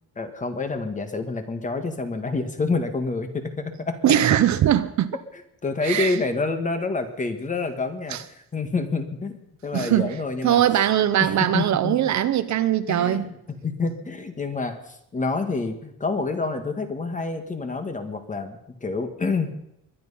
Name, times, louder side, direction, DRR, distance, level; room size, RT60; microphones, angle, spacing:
voice 1, 0.2-4.0 5.6-8.2 8.5-10.6 11.2-12.1 12.9-13.4 13.6-19.5, left 3 dB, 20° left, 1.5 m, -28 dB
voice 2, 4.0-5.2 5.8-6.2 8.1-8.2 9.7-10.2 10.4-13.3, right 11 dB, 50° right, 0.7 m, -21 dB
22.5 x 10.5 x 5.5 m
cardioid pair, 170°, 36 cm